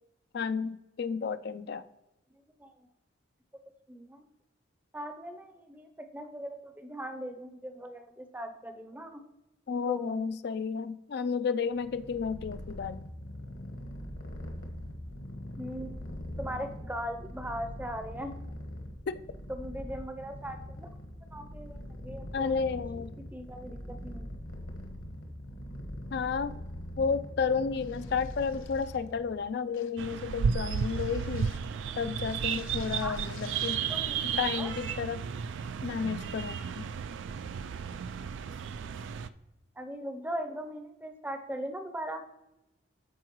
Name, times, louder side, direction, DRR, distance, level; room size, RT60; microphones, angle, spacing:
voice 1, 0.3-1.8 9.7-13.0 19.1-19.2 22.3-23.1 26.1-26.5 27.0-31.5 32.0-33.8 34.4-35.2 35.8-36.9, left 5 dB, 55° left, 13 dB, 0.4 m, -32 dB
voice 2, 3.9-4.3 4.9-9.2 9.9-10.2 15.6-18.3 19.5-20.9 21.3-22.6 23.3-24.3 33.0-33.2 33.8-34.2 34.6-34.7 39.8-42.2, equal, 10° right, 6 dB, 0.6 m, -39 dB
Purr, 11.7-29.4, left 1 dB, 75° left, 1.4 m, -42 dB
sound 1, 27.7-29.1 29.7-30.1 30.7-31.7 32.1-33.9, left 8 dB, 90° left, 0.8 m, -54 dB
sound 2, 30.0-39.3, right 7 dB, 65° right, 0.3 m, -33 dB
13.5 x 4.7 x 3.0 m, 0.92 s
head